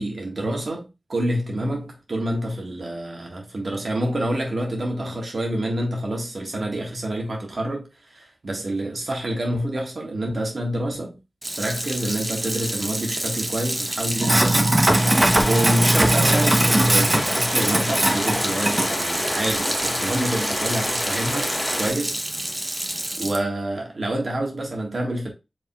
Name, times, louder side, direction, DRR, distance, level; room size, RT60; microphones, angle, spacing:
voice 1, 0.0-11.2 11.5-14.8 15.4-22.2 23.2-25.3, right 1 dB, 65° right, 1.6 m, -27 dB
Sink (filling or washing), 11.4-23.4, right 1 dB, 25° right, 0.8 m, -23 dB
sound 1, 14.9-21.9, left 1 dB, 30° left, 2.0 m, -28 dB
4.8 x 3.7 x 2.3 m
cardioid pair, 45°, 0 cm